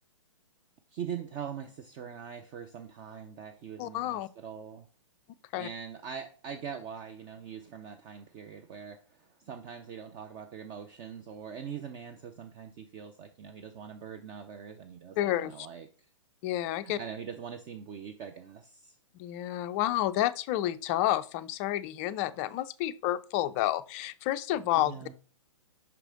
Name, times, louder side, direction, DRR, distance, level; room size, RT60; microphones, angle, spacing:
voice 1, 0.9-4.9 5.5-15.9 16.8-19.0 24.5-25.1, right 7 dB, 25° right, 0.5 m, -42 dB
voice 2, 3.8-4.3 5.5-5.7 15.2-15.5 16.4-17.0 19.2-25.1, left 14 dB, 25° left, 0.3 m, -30 dB
5.8 x 4.9 x 3.7 m
figure-of-eight pair, 120°, 17 cm